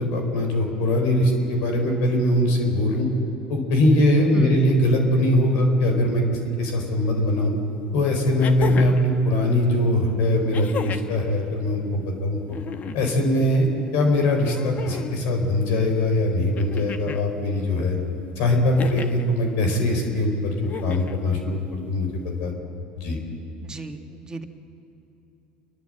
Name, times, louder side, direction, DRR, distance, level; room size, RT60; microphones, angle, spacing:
voice 1, 0.0-3.1 3.5-6.2 6.6-7.5 7.9-12.4 12.9-13.7 13.9-18.0 18.4-20.5 20.8-22.5 23.0-23.2, left 1 dB, 70° left, 3 dB, 4.3 m, -21 dB
voice 2, 4.3-4.9 23.6-24.4, right 3 dB, 20° right, 6 dB, 1.5 m, -35 dB
sound 1, 7.3-7.4 8.4-9.1 10.5-11.2 12.5-13.2 14.4-15.2 16.6-17.3 18.8-19.3 20.6-21.2 22.5-22.6, left 7 dB, 40° left, 1.1 m, -33 dB
29.0 x 11.5 x 7.8 m, 3.0 s
supercardioid pair, 95°, 4 cm